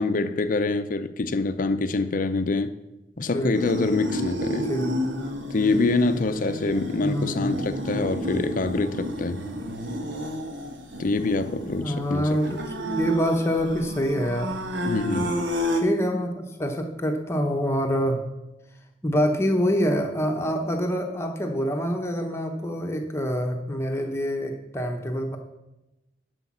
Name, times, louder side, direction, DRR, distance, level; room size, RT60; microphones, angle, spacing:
voice 1, 0.0-2.7 3.2-4.7 5.5-9.4 11.0-12.4 14.9-15.3, left 3 dB, 50° left, 10 dB, 0.5 m, -25 dB
voice 2, 3.2-3.5 4.6-4.9 7.0-7.7 11.6-14.5 15.7-18.2 19.0-25.4, equal, 15° left, 3 dB, 0.9 m, -26 dB
sound 1, 3.5-15.8, equal, 85° right, 1.4 m, -31 dB
11.5 x 5.1 x 7.2 m, 0.98 s
head